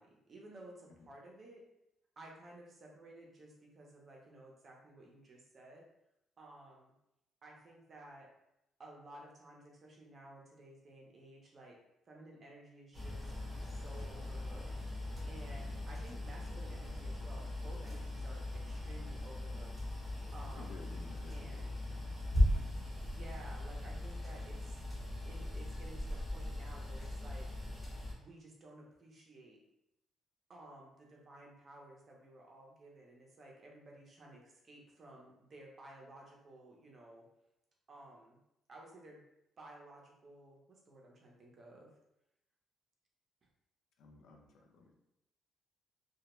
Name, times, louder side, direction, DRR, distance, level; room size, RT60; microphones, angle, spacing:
voice 1, 0.0-1.6 2.2-5.8 6.4-6.9 7.4-8.3 8.8-11.8 12.1-13.3 13.6-14.7 15.3-19.7 20.3-20.8 21.3-21.7 23.1-27.5 28.1-29.6 30.5-37.2 37.9-38.4 38.7-39.2 39.6-41.9, right 1 dB, 35° right, -1 dB, 0.6 m, -55 dB
sound 1, 12.9-28.1, left 1 dB, 10° right, 0.8 m, -38 dB
voice 2, 20.5-22.1 44.0-44.9, left 3 dB, 75° left, 1 dB, 0.4 m, -55 dB
2.2 x 2.1 x 2.9 m, 0.85 s
cardioid pair, 135°, 0 cm